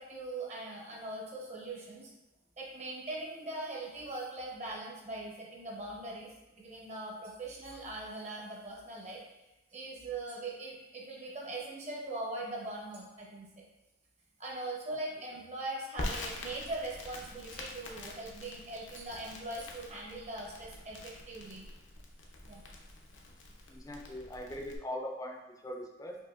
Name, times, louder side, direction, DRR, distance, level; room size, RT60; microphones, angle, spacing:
voice 1, 0.0-2.1 2.6-6.3 6.6-9.2 9.7-13.6 14.4-21.7 22.4-22.6, right 2 dB, 35° right, -3 dB, 0.8 m, -41 dB
Crackle, 16.0-24.8, left 1 dB, 80° left, 0.6 m, -45 dB
voice 2, 23.7-26.2, left 1 dB, 20° left, 1 dB, 0.4 m, -41 dB
4.8 x 2.6 x 2.4 m, 1.0 s
head